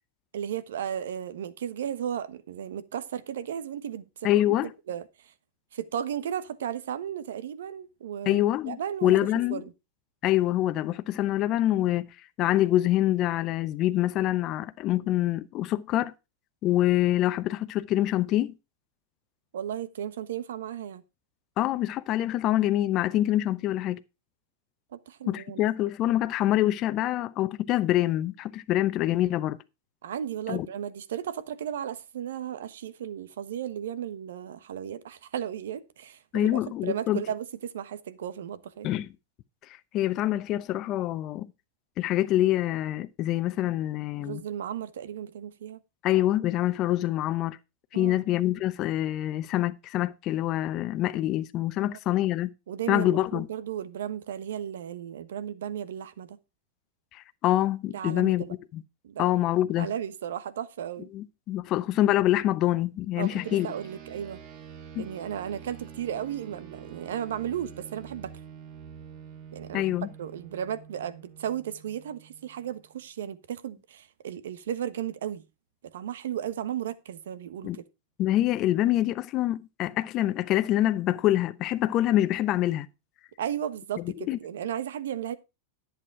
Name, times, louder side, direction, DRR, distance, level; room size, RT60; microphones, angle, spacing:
voice 1, 0.3-4.3 4.6-5.3 5.7-9.1 9.5-9.7 19.5-21.0 24.9-25.7 30.0-38.9 44.2-45.8 47.9-48.2 52.7-56.4 57.9-58.5 59.0-59.3 59.8-61.1 63.2-64.4 65.0-68.3 69.5-69.9 70.2-75.4 75.8-77.8 83.4-85.3, right 9 dB, 80° right, 1.2 m, -35 dB
voice 2, 4.2-4.7 8.3-9.6 10.2-12.1 12.4-16.1 16.6-18.5 21.6-24.0 25.3-29.6 30.5-30.7 36.3-37.2 38.8-39.1 39.9-41.5 42.0-44.4 46.0-47.6 47.9-52.5 52.9-53.5 57.1-58.5 58.7-58.8 59.2-59.9 61.1-63.7 64.9-65.1 69.7-70.1 77.6-77.8 78.2-82.9 84.3-84.4, left 14 dB, 40° left, 0.7 m, -25 dB
sound 1, 63.2-73.0, right 7 dB, 50° right, 2.3 m, -47 dB
11.0 x 8.1 x 4.7 m
hypercardioid pair, 115°, 0 cm